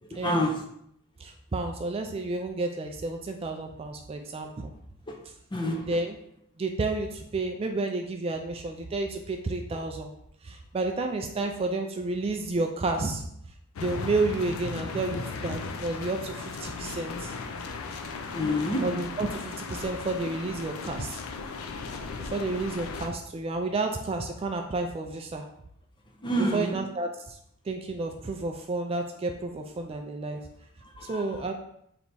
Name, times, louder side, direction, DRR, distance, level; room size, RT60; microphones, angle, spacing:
voice 1, 0.1-0.6 1.2-4.7 5.8-6.2 6.6-10.1 10.4-13.3 13.8-17.3 18.7-21.2 22.3-25.5 26.5-27.4 27.7-30.4 31.1-31.5, right 3 dB, 25° right, 4 dB, 0.3 m, -31 dB
voice 2, 5.5-5.9 18.2-18.8 26.2-26.7 31.0-31.2, equal, 20° left, 2 dB, 0.6 m, -27 dB
sound 1, 13.8-23.1, left 4 dB, 75° left, 0.4 m, -36 dB
3.4 x 3.0 x 4.0 m, 0.72 s
head